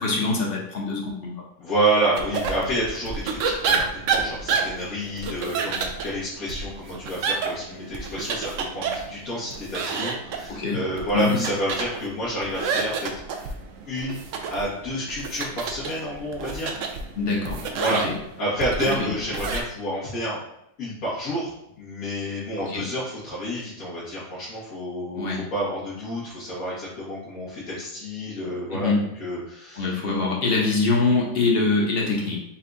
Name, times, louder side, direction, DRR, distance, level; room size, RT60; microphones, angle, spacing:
voice 1, 0.0-1.3 10.5-10.8 11.1-11.4 17.1-17.6 18.0-18.1 19.0-19.1 22.6-22.8 25.1-25.4 28.7-29.0 29.8-32.4, left 3 dB, 45° left, -2 dB, 1.0 m, -24 dB
voice 2, 1.6-13.5 13.9-14.2 14.5-16.7 17.7-18.1 18.4-20.4 20.8-30.0, right 1 dB, 90° left, -11 dB, 1.7 m, -29 dB
sound 1, 2.2-19.6, right 5 dB, 70° right, 0.9 m, -30 dB
4.4 x 2.3 x 3.8 m, 0.78 s
omnidirectional pair, 1.5 m